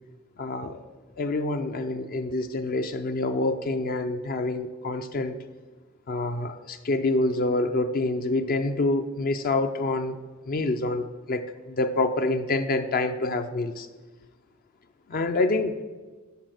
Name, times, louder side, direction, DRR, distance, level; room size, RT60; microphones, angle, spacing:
voice 1, 0.4-0.8 1.2-5.4 6.1-10.2 10.5-13.9 15.1-15.8, left 2 dB, 45° left, 8 dB, 0.4 m, -27 dB
10.5 x 4.1 x 6.4 m, 1.3 s
head